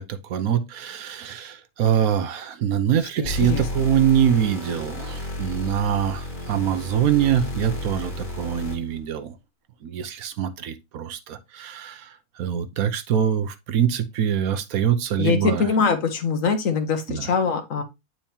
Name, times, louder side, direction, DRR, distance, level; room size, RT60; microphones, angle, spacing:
voice 1, 0.0-9.4 9.8-15.7 17.1-17.3, right 9 dB, 75° right, 1.2 m, -24 dB
voice 2, 3.2-3.7 15.2-17.8, left 5 dB, 65° left, 1.4 m, -23 dB
sound 1, 3.2-9.0, left 2 dB, 35° left, 1.9 m, -32 dB
8.7 x 4.5 x 2.8 m
omnidirectional pair, 1.5 m